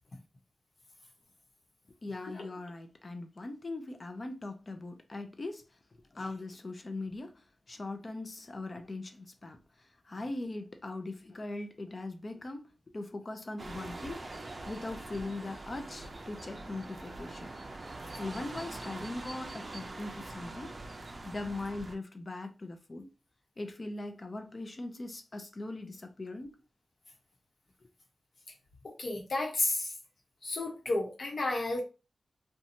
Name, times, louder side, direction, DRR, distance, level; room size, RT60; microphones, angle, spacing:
voice 1, 2.0-5.6 6.1-12.7 12.9-14.2 14.6-17.5 18.2-20.7 21.2-23.1 23.6-26.6, left 2 dB, 45° left, 0.5 m, -40 dB
sound 1, 13.6-22.0, right 2 dB, 45° right, 0.4 m, -43 dB
voice 2, 29.0-29.9 30.4-31.8, left 2 dB, 70° left, 1.0 m, -31 dB
2.8 x 2.2 x 2.6 m
wide cardioid pair, 80°, 0 cm